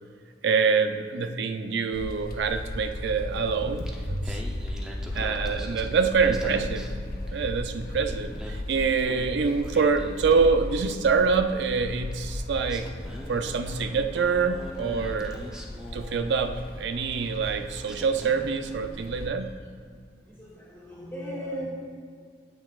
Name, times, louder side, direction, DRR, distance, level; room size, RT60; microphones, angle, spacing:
voice 1, 0.4-4.4 5.1-6.9 7.3-12.9 13.3-15.4 15.9-19.5, right 5 dB, 85° right, 7 dB, 0.5 m, -25 dB
sound 1, 1.9-19.3, left 1 dB, 55° left, 0.6 m, -36 dB
Singing, 3.6-7.6 7.9-11.1 12.1-12.2 12.7-16.9 17.5-17.6 17.8-18.7, equal, 5° right, 0.6 m, -44 dB
voice 2, 13.6-13.9 14.2-14.6 14.9-15.5 17.1-17.4 18.4-18.5 18.8-19.0 20.3-21.7, equal, 15° left, -9 dB, 1.5 m, -40 dB
9.0 x 8.4 x 2.4 m, 2.1 s
head